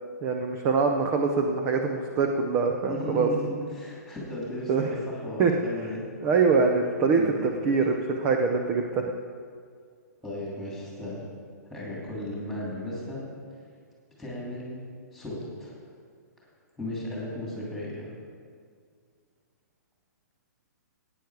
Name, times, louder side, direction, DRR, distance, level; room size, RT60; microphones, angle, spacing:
voice 1, 0.2-3.3 4.7-4.9 5.4-5.5 6.2-9.0, right 4 dB, 15° right, 3 dB, 0.5 m, -24 dB
voice 2, 2.9-6.1 7.2-7.9 10.2-11.2 11.7-13.2 14.2-14.7 15.1-15.8 16.8-18.1, left 1 dB, ahead, -6 dB, 2.7 m, -35 dB
15.0 x 9.4 x 4.8 m, 2.1 s
hypercardioid pair, 170°, 10 cm